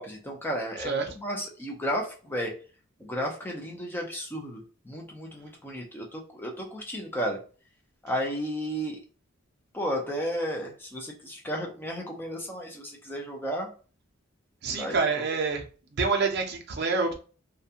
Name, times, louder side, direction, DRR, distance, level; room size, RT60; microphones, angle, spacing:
voice 1, 0.0-2.5 3.0-7.4 8.0-9.0 9.7-13.7 14.8-15.0, equal, 10° left, 0.5 m, -33 dB
voice 2, 14.6-15.6 15.9-17.1, right 4 dB, 50° right, 0.5 m, -27 dB
2.4 x 2.2 x 2.7 m
head